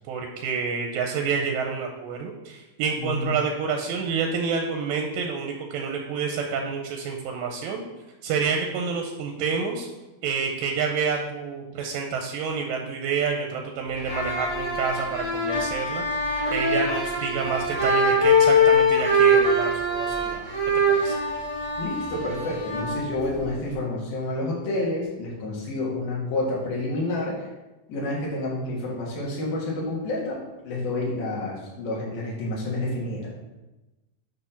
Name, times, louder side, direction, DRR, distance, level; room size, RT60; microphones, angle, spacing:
voice 1, 0.1-7.8 8.2-9.9 10.2-16.1 16.5-20.5 20.9-21.2, right 5 dB, 80° right, 3 dB, 2.0 m, -28 dB
voice 2, 3.0-3.3 21.8-27.5 27.9-30.4 30.6-33.3, left 2 dB, 65° left, -4 dB, 3.3 m, -29 dB
sound 1, 14.0-23.8, left 1 dB, 20° left, 1.5 m, -23 dB
8.5 x 3.1 x 5.8 m, 1.1 s
omnidirectional pair, 4.7 m